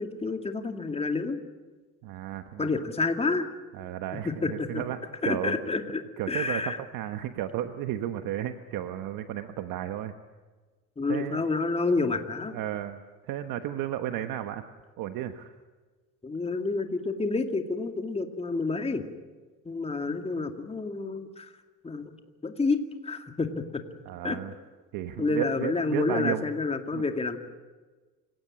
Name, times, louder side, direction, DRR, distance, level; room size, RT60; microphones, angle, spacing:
voice 1, 0.0-1.4 2.6-3.5 4.3-4.8 5.2-6.0 6.3-6.8 11.0-12.6 16.2-19.1 19.7-21.5 21.8-22.1 22.4-23.8 24.2-24.4 25.2-27.4, left 3 dB, 20° left, 5 dB, 2.3 m, -29 dB
voice 2, 2.0-2.7 3.8-5.6 6.2-10.1 11.1-11.4 12.5-14.6 15.0-15.5 24.0-24.5 24.9-26.4 26.9-27.0, right 12 dB, 75° right, 7 dB, 1.4 m, -33 dB
27.0 x 17.5 x 9.9 m, 1.3 s
cardioid pair, 120°, 33 cm